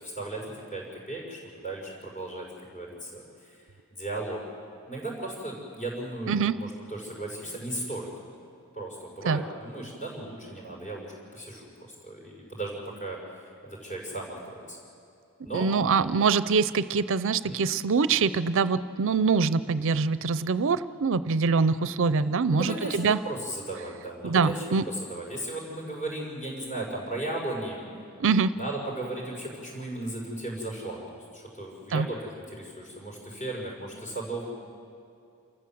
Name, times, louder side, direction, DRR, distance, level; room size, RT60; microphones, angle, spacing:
voice 1, 0.0-3.6 3.9-4.4 4.9-8.1 8.7-11.7 12.0-14.8 15.4-15.7 17.4-17.6 22.1-27.8 28.5-31.0 31.3-34.5, right 2 dB, 35° left, -3 dB, 6.2 m, -36 dB
voice 2, 15.5-23.2 24.2-24.8 28.2-28.5 31.9-32.1, right 5 dB, 60° right, 15 dB, 0.5 m, -24 dB
29.0 x 14.5 x 7.8 m, 2.6 s
head